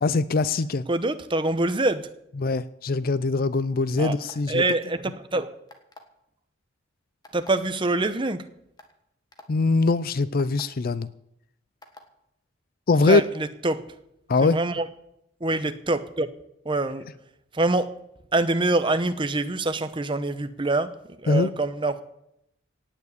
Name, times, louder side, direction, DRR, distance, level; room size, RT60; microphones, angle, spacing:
voice 1, 0.0-0.9 2.4-4.6 9.5-11.1 12.9-13.2 14.3-14.6 21.3-21.5, left 3 dB, 45° left, 0.5 m, -22 dB
voice 2, 0.9-2.1 4.0-4.2 4.5-5.5 7.3-8.5 13.1-13.9 14.4-14.9 15.4-16.3 16.6-17.1 17.5-18.0 18.3-22.0, right 2 dB, 25° right, 0.8 m, -25 dB
sound 1, 4.1-4.5 5.7-6.1 7.2-7.5 8.3-8.4 8.8-8.9 9.3-9.5 10.4-10.6 11.8-12.1, left 2 dB, 20° left, 1.5 m, -47 dB
18.0 x 7.4 x 8.2 m
head